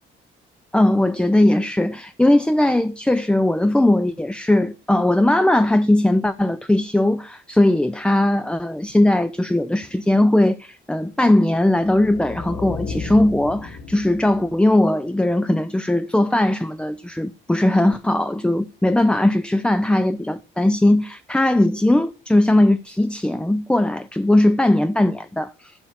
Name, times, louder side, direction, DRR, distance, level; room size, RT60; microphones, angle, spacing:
voice 1, 0.7-25.7, left 1 dB, 5° left, 0.5 m, -19 dB
sound 1, 11.8-14.7, left 4 dB, 85° left, 2.7 m, -33 dB
7.1 x 6.8 x 7.4 m
cardioid pair, 90°, 20 cm